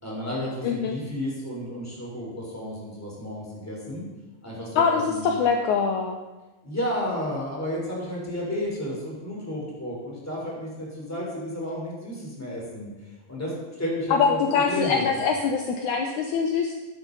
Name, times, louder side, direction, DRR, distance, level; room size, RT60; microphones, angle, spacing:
voice 1, 0.0-4.0 4.4-5.3 6.6-14.4 14.7-15.2, left 1 dB, 5° left, -4 dB, 3.5 m, -32 dB
voice 2, 0.6-1.0 4.8-6.2 14.1-16.7, left 6 dB, 75° left, 3 dB, 2.0 m, -23 dB
13.5 x 11.0 x 4.0 m, 1.1 s
omnidirectional pair, 3.9 m